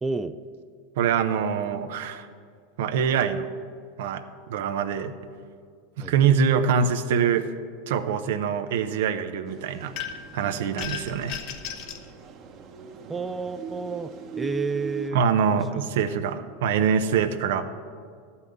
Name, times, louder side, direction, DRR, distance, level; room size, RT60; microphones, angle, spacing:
voice 1, 0.0-0.4 6.0-6.1 13.1-15.8, right 4 dB, 15° right, 10 dB, 0.4 m, -31 dB
voice 2, 1.0-2.3 2.8-3.5 4.0-5.1 6.0-7.5 7.9-9.9 10.3-11.4 15.1-17.6, right 7 dB, 75° right, 9 dB, 0.7 m, -24 dB
sound 1, 9.5-15.1, right 6 dB, 40° right, 1.1 m, -41 dB
sound 2, 10.0-10.4 10.8-12.1, left 8 dB, 55° left, 1.0 m, -35 dB
12.0 x 5.7 x 8.0 m, 2.1 s
supercardioid pair, 120°, 0 cm